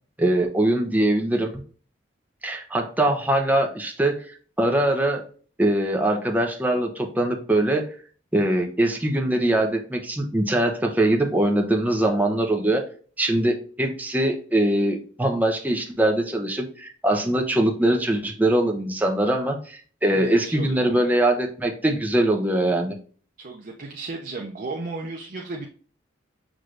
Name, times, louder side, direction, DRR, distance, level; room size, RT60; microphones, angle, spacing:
voice 1, 0.2-1.5 2.4-4.2 4.6-5.2 5.6-7.9 8.3-12.8 13.2-22.9, right 1 dB, 10° right, 2 dB, 0.7 m, -22 dB
voice 2, 20.1-21.1 23.4-25.7, right 3 dB, 45° right, 0 dB, 0.6 m, -34 dB
6.1 x 3.1 x 2.5 m, 0.42 s
head